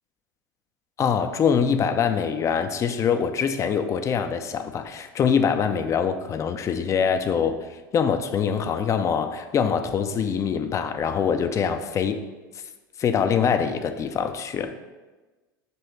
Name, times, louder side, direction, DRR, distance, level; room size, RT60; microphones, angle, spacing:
voice 1, 1.0-7.6 7.9-12.2 13.0-14.7, left 7 dB, 25° left, 8 dB, 0.5 m, -24 dB
6.9 x 3.0 x 4.5 m, 1.2 s
figure-of-eight pair, 80°, 11 cm